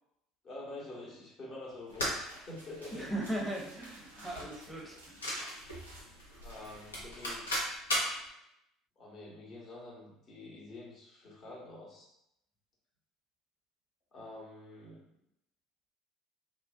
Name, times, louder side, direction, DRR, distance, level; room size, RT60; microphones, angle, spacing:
voice 1, 0.4-3.1 6.4-7.8 8.3-8.4 9.0-12.1 14.1-15.0, left 2 dB, 40° left, -4 dB, 1.0 m, -47 dB
sound 1, 1.7-7.0, right 1 dB, 85° right, 0.5 m, -56 dB
sound 2, 1.9-8.2, equal, 80° left, 0.6 m, -38 dB
voice 2, 2.9-5.2, right 1 dB, 5° right, -2 dB, 0.7 m, -38 dB
2.4 x 2.1 x 2.5 m, 0.80 s
figure-of-eight pair, 60°, 0 cm